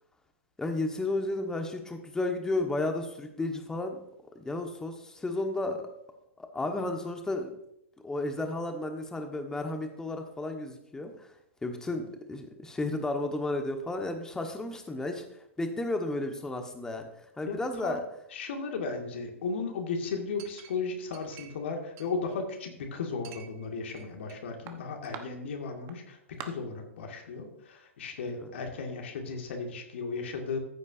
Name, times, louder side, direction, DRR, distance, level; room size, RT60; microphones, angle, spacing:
voice 1, 0.6-4.0 4.3-5.8 6.5-7.5 8.0-11.3 11.6-15.2 15.6-17.1 17.4-18.0 28.4-28.5, left 2 dB, 10° left, 5 dB, 1.3 m, -33 dB
voice 2, 18.3-30.6, left 4 dB, 60° left, 2 dB, 2.1 m, -35 dB
Chink clink, 20.4-21.7 22.0-22.8 23.2-24.4 24.7-25.2 25.9-26.0 26.4-26.5, right 10 dB, 35° right, 1.1 m, -46 dB
14.5 x 8.2 x 2.7 m, 0.78 s
figure-of-eight pair, 105°, 7 cm